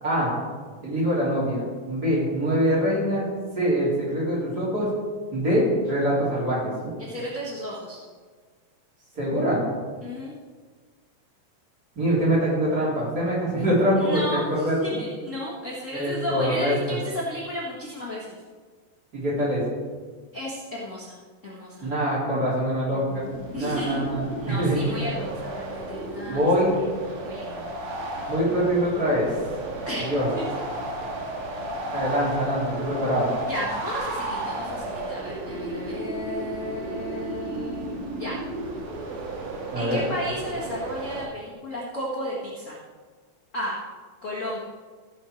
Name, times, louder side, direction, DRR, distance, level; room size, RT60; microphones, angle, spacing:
voice 1, 0.0-0.3 0.8-3.3 3.5-4.9 5.3-6.9 9.2-9.6 12.0-15.0 15.9-16.7 19.1-19.6 21.8-23.2 23.6-25.0 26.3-26.8 28.3-29.3 30.1-30.3 31.9-33.3 39.7-40.0, equal, 30° right, -7 dB, 3.6 m, -24 dB
voice 2, 7.0-8.0 10.0-10.3 14.0-18.4 20.3-21.2 21.4-21.9 23.5-26.5 27.2-27.6 29.9-30.1 30.3-30.4 33.5-38.4 39.7-42.7 43.5-43.8 44.2-44.6, equal, 40° left, -6 dB, 1.1 m, -33 dB
sound 1, 22.9-41.3, right 2 dB, 70° right, 3.0 m, -33 dB
15.5 x 6.4 x 4.5 m, 1.5 s
omnidirectional pair, 4.0 m